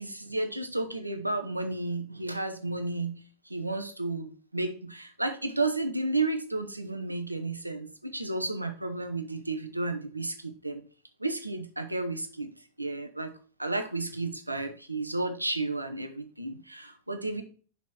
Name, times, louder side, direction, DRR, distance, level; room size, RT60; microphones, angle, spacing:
voice 1, 0.0-10.8 11.2-12.5 12.8-13.3 13.6-17.4, right 2 dB, 85° right, 7 dB, 0.9 m, -32 dB
6.0 x 4.1 x 4.6 m, 0.40 s
figure-of-eight pair, 90°, 0 cm